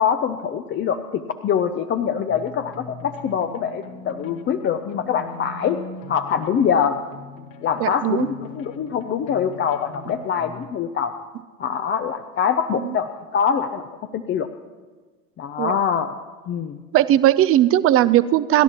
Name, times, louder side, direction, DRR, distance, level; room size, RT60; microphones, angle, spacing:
voice 1, 0.0-5.8 6.1-7.0 7.6-11.1 11.6-13.8 14.1-14.5 15.4-16.1 16.5-16.8, left 7 dB, 25° left, 7 dB, 0.6 m, -24 dB
sound 1, 2.3-10.7, left 4 dB, 60° left, 1.6 m, -41 dB
voice 2, 7.8-8.3 12.7-12.9 15.6-15.8 16.9-18.6, right 13 dB, 30° right, 15 dB, 0.5 m, -18 dB
28.5 x 11.5 x 3.0 m, 1.4 s
hypercardioid pair, 95°, 45 cm